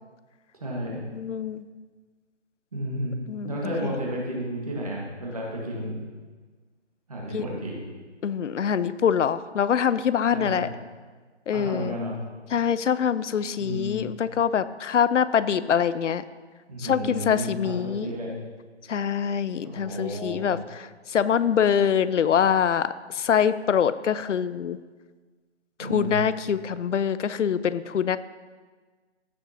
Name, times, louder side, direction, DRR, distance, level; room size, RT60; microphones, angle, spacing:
voice 1, 0.6-1.0 2.7-6.0 7.1-7.8 10.3-10.7 11.5-12.2 13.6-14.1 16.7-18.4 19.6-20.6 25.8-26.3, equal, 30° right, -3 dB, 1.7 m, -32 dB
voice 2, 1.1-1.6 3.3-3.9 7.3-7.4 8.2-10.7 11.5-12.0 12.5-16.2 16.8-18.1 18.9-24.8 25.8-28.2, left 8 dB, 90° left, 15 dB, 0.5 m, -24 dB
15.5 x 6.7 x 2.8 m, 1.4 s
hypercardioid pair, 175°, 35 cm